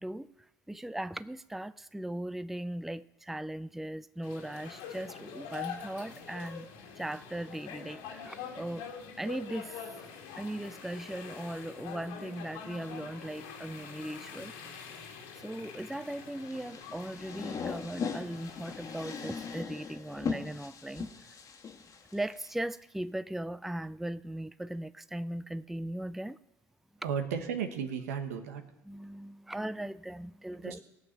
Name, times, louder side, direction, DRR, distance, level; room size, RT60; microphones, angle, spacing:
voice 1, 0.0-0.3 0.7-6.7 7.0-8.9 9.2-9.8 10.4-14.5 15.4-21.1 22.1-26.4 28.9-30.8, right 1 dB, 5° right, 0.4 m, -38 dB
sound 1, 4.2-19.6, left 6 dB, 75° left, 2.0 m, -45 dB
sound 2, 16.4-22.5, left 5 dB, 45° left, 1.6 m, -39 dB
voice 2, 27.0-28.6 30.6-30.8, right 7 dB, 85° right, 1.3 m, -34 dB
19.0 x 7.1 x 5.9 m
hypercardioid pair, 70°, 8 cm